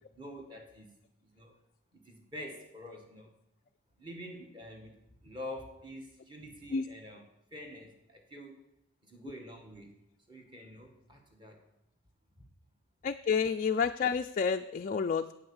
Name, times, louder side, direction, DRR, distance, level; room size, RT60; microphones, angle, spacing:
voice 1, 0.1-0.9 1.2-1.5 1.9-3.3 4.0-5.0 5.2-7.2 7.5-8.6 9.0-10.0 10.3-11.6, left 1 dB, 20° right, 2 dB, 1.8 m, -46 dB
voice 2, 13.0-15.4, left 6 dB, 40° left, 5 dB, 0.3 m, -30 dB
8.9 x 8.6 x 7.1 m, 0.82 s
head